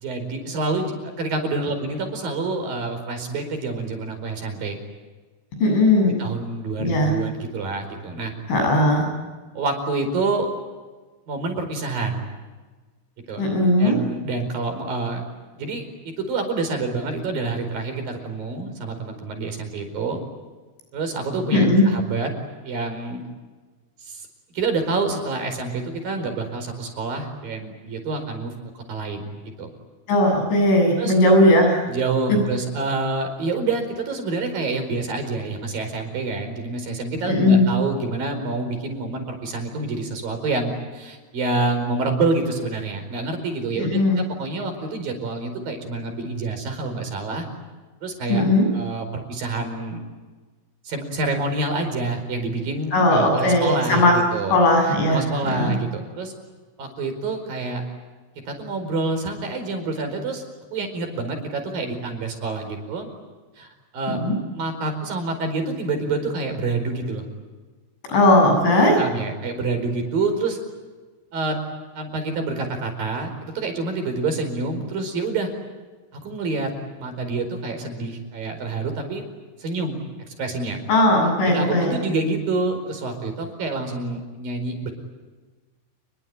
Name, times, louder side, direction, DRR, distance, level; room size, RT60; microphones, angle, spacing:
voice 1, 0.0-4.8 6.0-8.3 9.5-10.5 11.3-12.3 13.3-13.4 13.8-15.2 15.6-20.2 20.9-22.3 22.6-23.2 24.0-24.3 24.5-28.5 28.9-29.3 29.6-29.7 31.0-31.1 31.9-47.4 48.0-48.4 48.7-50.0 50.8-54.6 55.1-56.3 56.8-57.8 58.5-60.4 60.7-63.1 63.6-63.7 63.9-64.2 64.5-67.2 69.0-70.6 71.3-71.6 71.9-75.5 76.1-79.2 79.6-80.0 80.4-80.8 81.5-84.9, right 3 dB, 45° right, 6 dB, 6.1 m, -27 dB
voice 2, 5.6-6.1 6.8-7.1 8.5-9.1 13.4-14.0 21.5-21.8 30.1-31.8 32.3-32.4 37.3-37.7 43.8-44.2 48.3-48.7 52.9-54.2 54.5-55.2 55.5-55.7 64.1-64.4 68.1-69.0 80.9-81.9, left 1 dB, 65° left, 3 dB, 10.0 m, -18 dB
29.5 x 22.5 x 8.9 m, 1.3 s
omnidirectional pair, 5.8 m